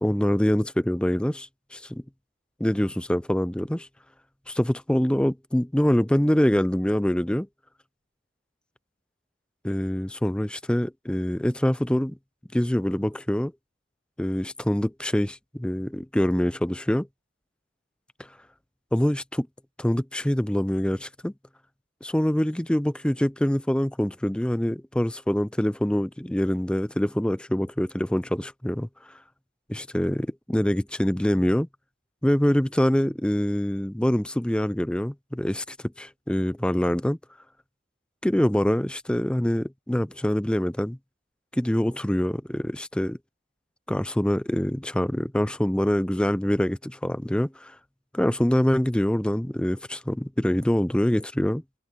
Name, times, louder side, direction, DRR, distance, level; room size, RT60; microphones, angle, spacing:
voice 1, 0.0-2.0 2.6-3.9 4.5-7.5 9.6-12.2 12.5-13.5 14.2-17.1 18.2-18.3 18.9-19.5 19.8-21.3 22.0-28.9 29.7-31.7 32.2-37.2 38.2-41.0 41.5-43.2 43.9-47.8 48.1-51.6, equal, 5° left, 0.4 m, -25 dB
head